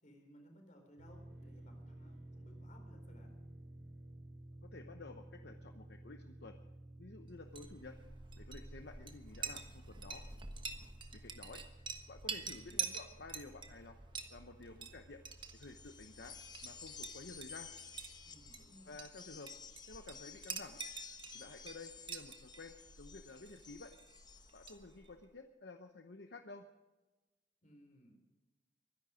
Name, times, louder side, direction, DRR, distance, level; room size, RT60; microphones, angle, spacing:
voice 1, 0.0-3.4 12.4-12.9 18.2-18.9 27.6-28.1, equal, 40° left, 4 dB, 4.1 m, -61 dB
sound 1, 1.0-18.6, right 1 dB, 70° right, 3.7 m, -56 dB
voice 2, 4.6-6.6 7.0-8.0 8.4-10.2 11.1-11.6 12.1-14.0 14.3-15.2 15.5-16.4 16.6-17.7 18.9-19.5 19.9-20.8 21.3-23.9 24.5-26.7, left 3 dB, 60° left, 6 dB, 0.9 m, -52 dB
Chink clink, 7.4-25.2, right 5 dB, 25° right, 1.3 m, -48 dB
sound 2, 15.4-24.8, left 6 dB, 20° left, 1.1 m, -54 dB
23.0 x 11.0 x 5.1 m, 1.2 s
head